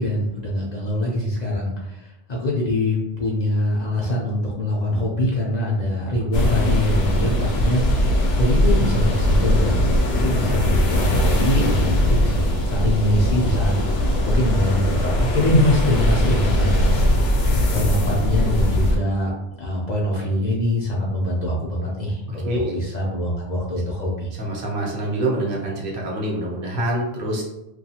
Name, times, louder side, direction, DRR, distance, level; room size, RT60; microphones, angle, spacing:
voice 1, 0.0-7.8 8.3-9.8 10.1-13.7 14.2-17.0 17.7-19.3 19.6-24.3, left 1 dB, 50° left, -4 dB, 0.6 m, -23 dB
sound 1, 6.3-19.0, left 1 dB, 80° left, 0.8 m, -20 dB
voice 2, 22.3-22.8 24.3-27.4, right 1 dB, 60° right, -2 dB, 0.8 m, -26 dB
2.4 x 2.3 x 2.8 m, 0.91 s
omnidirectional pair, 1.1 m